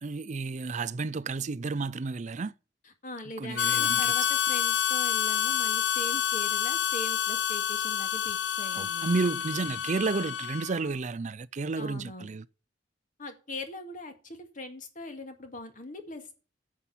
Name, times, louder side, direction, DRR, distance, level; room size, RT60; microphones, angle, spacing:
voice 1, 0.0-2.5 3.4-4.3 8.7-12.4, right 4 dB, 40° right, 0.4 m, -31 dB
voice 2, 3.0-9.3 11.8-12.3 13.2-16.3, left 2 dB, 45° left, 2.1 m, -41 dB
Harmonica, 3.6-10.8, left 9 dB, 70° left, 0.5 m, -28 dB
9.8 x 7.5 x 7.1 m
head